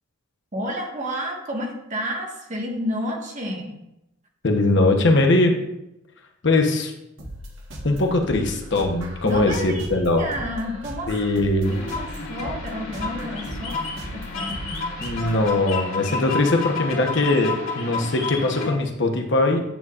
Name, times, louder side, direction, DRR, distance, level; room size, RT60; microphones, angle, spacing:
voice 1, 0.5-3.8 9.2-11.1 11.7-13.8 14.1-14.5, equal, 35° right, 0 dB, 1.5 m, -30 dB
voice 2, 4.4-5.6 6.4-6.9 7.8-10.2 11.1-11.8 15.0-19.6, left 2 dB, 60° left, 3 dB, 1.0 m, -21 dB
sound 1, 7.2-15.5, equal, 70° right, 1.4 m, -37 dB
sound 2, 11.6-18.7, left 4 dB, 80° left, 2.2 m, -31 dB
9.1 x 8.0 x 2.5 m, 0.87 s
head